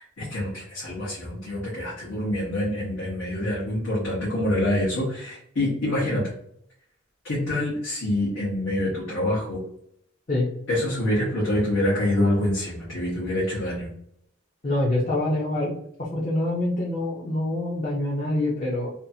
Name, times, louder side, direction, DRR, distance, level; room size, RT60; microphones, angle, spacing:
voice 1, 0.2-6.2 7.2-9.6 10.7-13.9, left 1 dB, 80° left, -8 dB, 1.0 m, -26 dB
voice 2, 14.6-15.7 16.1-18.9, left 1 dB, 40° left, -6 dB, 0.6 m, -25 dB
2.8 x 2.3 x 2.7 m, 0.70 s
head